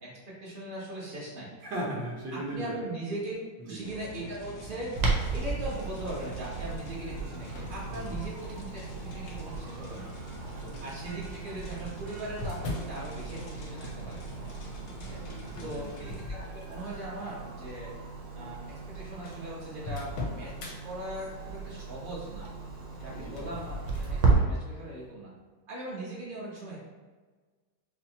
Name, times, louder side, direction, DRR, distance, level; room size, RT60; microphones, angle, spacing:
voice 1, 0.0-1.5 2.3-3.3 3.6-5.0 5.3-10.1 10.8-14.2 15.1-15.2 15.6-17.9 18.3-22.5 23.0-25.3 25.7-26.8, right 1 dB, 40° right, -6 dB, 0.8 m, -40 dB
voice 2, 1.6-2.8 3.6-3.9 7.9-8.1 10.5-10.8 15.2-16.0 23.1-23.3, right 1 dB, 70° right, -5 dB, 1.7 m, -38 dB
sound 1, 3.8-16.2, right 1 dB, 60° left, 0.8 m, -44 dB
Clock, 5.0-24.3, right 4 dB, 85° right, 1.6 m, -35 dB
sound 2, 7.4-8.9 9.6-10.0 11.1-13.0 15.5-17.0 17.5-17.8 18.5-18.6 18.8-18.9 19.2-20.7 22.9-24.2, left 3 dB, 80° left, 1.6 m, -40 dB
5.6 x 2.1 x 2.8 m, 1.4 s
omnidirectional pair, 2.2 m